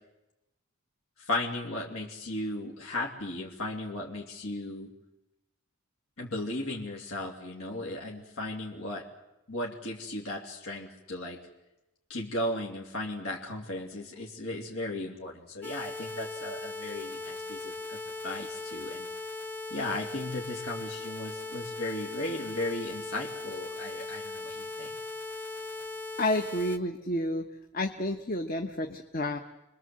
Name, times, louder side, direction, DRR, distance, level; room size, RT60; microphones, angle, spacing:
voice 1, 1.2-4.9 6.2-9.1 9.5-11.4 12.1-18.0 18.2-19.1 19.7-24.9, left 1 dB, 75° left, -1 dB, 3.1 m, -36 dB
sound 1, 15.6-26.8, left 3 dB, 10° left, 1.1 m, -39 dB
voice 2, 26.2-27.5 27.7-29.4, left 1 dB, 40° left, 5 dB, 1.2 m, -30 dB
28.5 x 22.0 x 7.8 m, 0.94 s
head